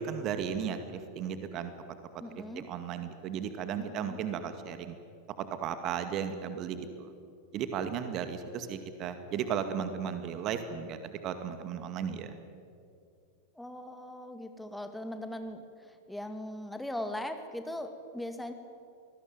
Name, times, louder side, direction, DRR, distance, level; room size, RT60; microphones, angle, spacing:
voice 1, 0.0-1.7 2.4-5.0 5.4-7.2 7.5-12.4, right 7 dB, 35° right, 9 dB, 2.1 m, -35 dB
voice 2, 2.2-2.6 3.8-4.2 13.6-18.5, left 1 dB, 5° left, 7 dB, 2.3 m, -40 dB
25.5 x 20.5 x 9.4 m, 2.3 s
figure-of-eight pair, 90°, 0 cm